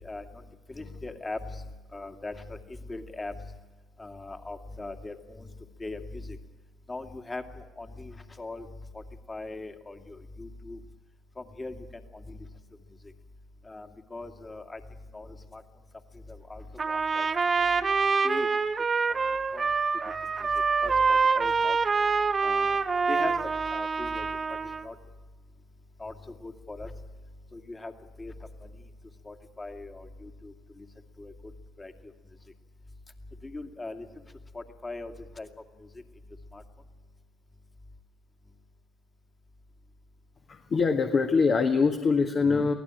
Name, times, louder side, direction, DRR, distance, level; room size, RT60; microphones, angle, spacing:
voice 1, 0.7-3.5 4.0-5.5 5.8-6.4 6.9-8.7 9.3-10.8 11.4-11.7 12.3-12.4 13.7-14.8 15.1-15.6 16.3-17.3 18.2-18.5 19.1-19.2 19.5-19.7 20.4-20.5 20.8-21.8 22.4-22.8 23.1-23.4 23.7-24.3 24.8-24.9 26.0-26.1 26.4-26.9 27.5-27.9 28.2-28.3 28.6-28.7 29.2-30.9 31.2-31.3 31.8-31.9 33.4-34.1 34.5-35.5 36.5-36.6, left 2 dB, 25° left, 5 dB, 2.4 m, -40 dB
Trumpet, 16.8-24.9, right 4 dB, 35° right, 1.0 m, -26 dB
voice 2, 40.5-42.7, left 4 dB, 40° left, 4 dB, 1.7 m, -23 dB
23.0 x 16.5 x 9.1 m, 1.2 s
hypercardioid pair, 55°, 0 cm